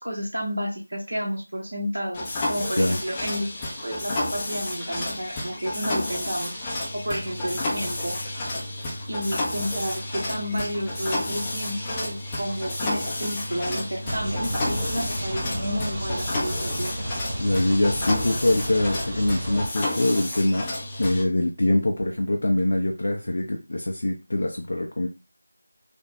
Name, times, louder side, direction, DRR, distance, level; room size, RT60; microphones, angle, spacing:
voice 1, 0.0-3.5 3.8-8.2 9.1-16.9, equal, 65° right, -2 dB, 1.1 m, -31 dB
Mechanisms, 2.1-21.2, left 1 dB, 15° left, 0.6 m, -31 dB
sound 1, 14.0-19.7, equal, 20° right, 0.9 m, -32 dB
voice 2, 17.4-20.7 21.0-25.1, left 1 dB, 55° left, 1 dB, 0.6 m, -23 dB
3.4 x 2.3 x 3.9 m, 0.30 s
figure-of-eight pair, 170°, 0 cm